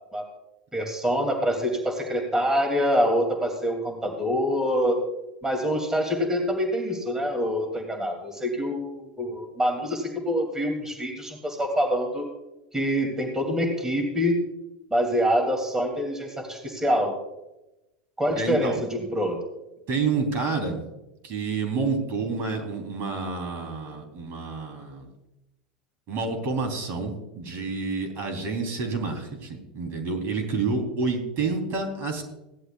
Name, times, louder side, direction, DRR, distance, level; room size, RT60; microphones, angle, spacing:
voice 1, 0.7-5.0 5.4-12.2 12.7-14.4 14.9-17.2 18.2-19.4, equal, 10° right, 2 dB, 2.6 m, -25 dB
voice 2, 18.4-18.8 19.9-20.8 21.2-25.1 26.1-32.2, right 4 dB, 50° right, 4 dB, 3.3 m, -29 dB
17.5 x 11.0 x 2.4 m, 0.97 s
hypercardioid pair, 105°, 5 cm